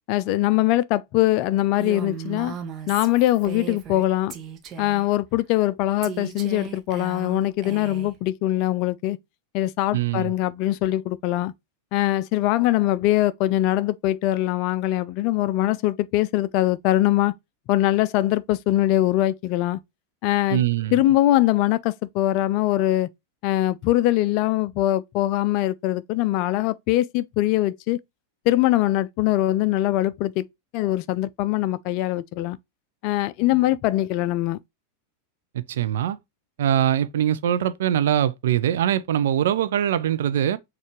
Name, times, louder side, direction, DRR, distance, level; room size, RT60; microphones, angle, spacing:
voice 1, 0.1-2.5 2.9-4.4 4.8-9.2 9.5-11.5 11.9-17.3 17.7-19.8 20.2-20.6 20.9-23.1 23.4-28.0 28.5-30.5 30.7-32.6 33.0-34.6, left 15 dB, 45° left, 0.3 m, -22 dB
Female speech woman speaking, 1.8-4.0 4.3-5.1 6.0-8.1, right 7 dB, 30° right, 0.9 m, -36 dB
voice 2, 9.9-10.3 20.5-21.0 35.5-36.2 36.6-40.6, right 10 dB, 60° right, 0.5 m, -22 dB
6.3 x 2.5 x 2.9 m
figure-of-eight pair, 90°, 0 cm